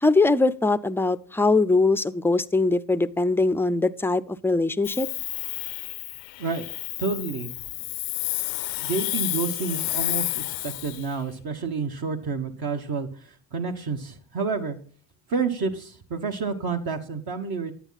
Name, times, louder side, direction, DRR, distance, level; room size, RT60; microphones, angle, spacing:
voice 1, 0.0-5.1, left 3 dB, 5° left, 14 dB, 0.4 m, -22 dB
Hiss, 4.8-11.1, left 22 dB, 85° left, 0.5 m, -31 dB
voice 2, 7.0-7.5 8.8-14.8 15.3-17.7, right 4 dB, 55° right, 5 dB, 1.3 m, -29 dB
10.0 x 9.5 x 4.0 m, 0.43 s
supercardioid pair, 80°, 44 cm